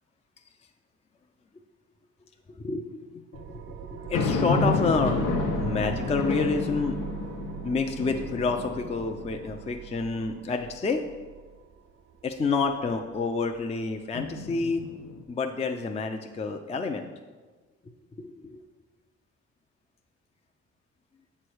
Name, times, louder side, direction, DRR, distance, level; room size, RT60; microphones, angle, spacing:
voice 1, 2.6-6.9 7.6-11.0 12.2-14.8 15.3-17.1 17.9-18.6, left 4 dB, 20° left, 4 dB, 0.5 m, -29 dB
sound 1, 3.3-14.4, right 9 dB, 45° right, 0.5 m, -41 dB
sound 2, 4.1-9.7 10.2-10.3 14.1-15.2, left 4 dB, 90° left, 0.9 m, -30 dB
7.6 x 3.2 x 6.2 m, 1.3 s
cardioid pair, 90°, 30 cm